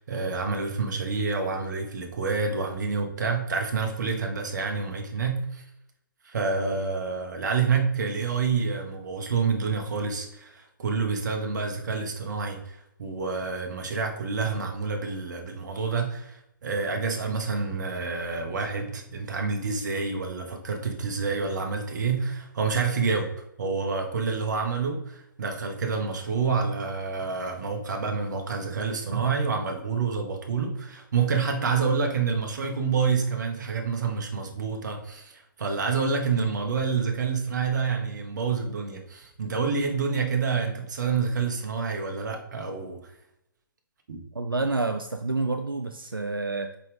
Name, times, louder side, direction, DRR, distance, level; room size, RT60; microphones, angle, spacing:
voice 1, 0.0-5.6 6.2-23.3 23.6-43.0 44.1-44.2, right 5 dB, 55° right, 3 dB, 1.2 m, -28 dB
voice 2, 44.3-46.8, right 3 dB, 90° right, 6 dB, 0.4 m, -28 dB
5.5 x 5.1 x 3.4 m, 0.82 s
figure-of-eight pair, 125°, 11 cm